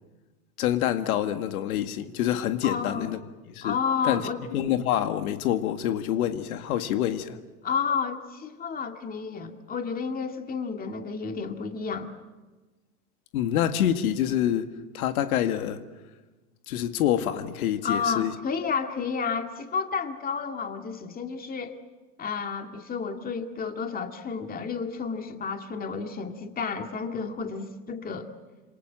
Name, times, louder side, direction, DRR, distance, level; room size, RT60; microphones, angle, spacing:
voice 1, 0.6-3.2 3.5-3.8 4.0-7.4 13.3-15.8 16.7-18.3, left 11 dB, 70° left, 1.9 m, -26 dB
voice 2, 2.6-3.1 3.6-4.4 7.6-12.1 17.8-21.8 22.2-28.3, left 5 dB, 20° left, 2.3 m, -31 dB
27.5 x 26.5 x 7.5 m
hypercardioid pair, 125°, 45 cm